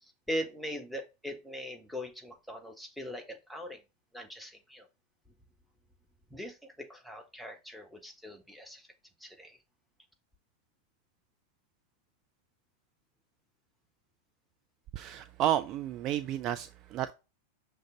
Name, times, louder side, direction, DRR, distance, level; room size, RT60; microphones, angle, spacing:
voice 1, 0.0-3.8 4.1-4.9 6.3-8.9 9.2-9.6, equal, ahead, 1.3 m, -41 dB
voice 2, 14.9-17.1, right 12 dB, 35° right, 0.4 m, -31 dB
6.4 x 3.3 x 5.1 m
figure-of-eight pair, 90°, 0 cm